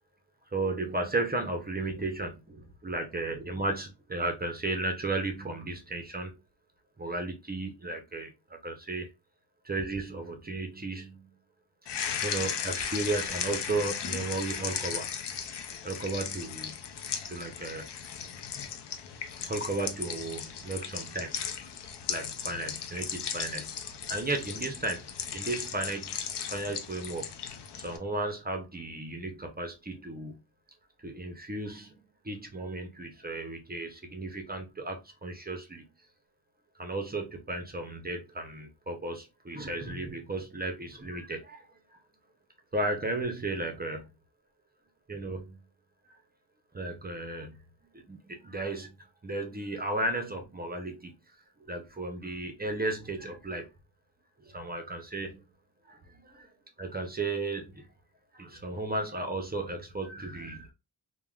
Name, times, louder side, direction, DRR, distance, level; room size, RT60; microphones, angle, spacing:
voice 1, 0.5-6.3 7.0-9.1 9.6-11.3 12.2-15.1 15.8-16.7 17.3-17.9 19.5-21.3 22.1-23.7 24.1-26.1 26.4-30.4 31.0-35.8 36.8-41.7 42.7-44.1 45.1-45.6 46.7-47.6 47.9-48.9 49.2-51.1 51.7-53.7 54.4-55.4 55.9-56.5 56.8-57.9 58.3-60.7, right 2 dB, 25° right, 0.5 m, -34 dB
sound 1, 11.9-28.0, left 7 dB, 75° left, 0.5 m, -36 dB
3.4 x 2.1 x 2.2 m
wide cardioid pair, 125°, 41 cm